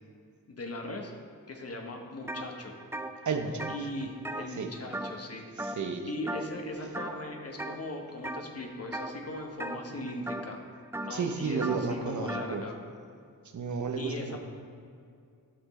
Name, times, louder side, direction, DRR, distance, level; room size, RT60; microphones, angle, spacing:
voice 1, 0.5-1.1 1.5-2.8 3.1-3.2 3.7-5.7 6.1-10.6 11.0-12.7 14.0-14.4, left 1 dB, 45° left, 2 dB, 1.2 m, -39 dB
sound 1, 2.3-2.5 2.8-5.3 5.6-6.0 6.3-6.6 6.9-7.8 8.2-8.6 8.9-12.5, right 1 dB, 5° right, 0.4 m, -38 dB
voice 2, 3.3-3.7 4.6-4.7 5.6-6.1 11.1-12.6 13.5-14.4, right 5 dB, 55° right, 6 dB, 0.9 m, -32 dB
11.5 x 5.9 x 4.2 m, 2.3 s
wide cardioid pair, 90°, 35 cm